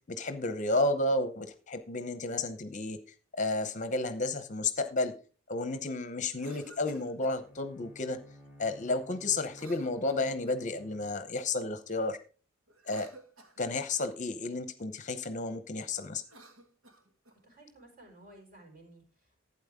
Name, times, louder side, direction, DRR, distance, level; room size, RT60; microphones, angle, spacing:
voice 1, 0.1-3.0 3.3-5.1 5.5-8.2 8.6-12.2 12.9-13.1 13.6-16.2, left 2 dB, 35° left, 10 dB, 0.8 m, -32 dB
Cough, 6.3-7.4 9.5-10.7 12.7-13.9 16.2-17.4, right 2 dB, 80° right, 1.7 m, -55 dB
Bowed string instrument, 7.4-11.6, equal, 10° right, 2.2 m, -54 dB
voice 2, 17.3-19.4, right 1 dB, 45° right, 1 dB, 4.6 m, -55 dB
12.0 x 8.8 x 3.6 m, 0.36 s
head